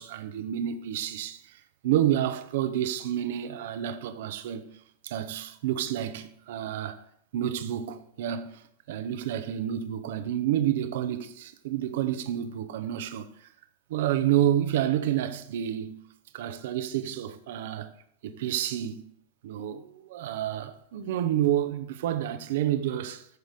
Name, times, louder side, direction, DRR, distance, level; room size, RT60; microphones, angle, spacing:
voice 1, 0.0-4.7 5.0-7.0 7.3-13.5 13.9-16.0 16.3-17.9 18.2-19.0 19.4-23.3, right 11 dB, 55° right, 1.0 m, -29 dB
14.5 x 6.6 x 5.0 m
figure-of-eight pair, 90°, 0 cm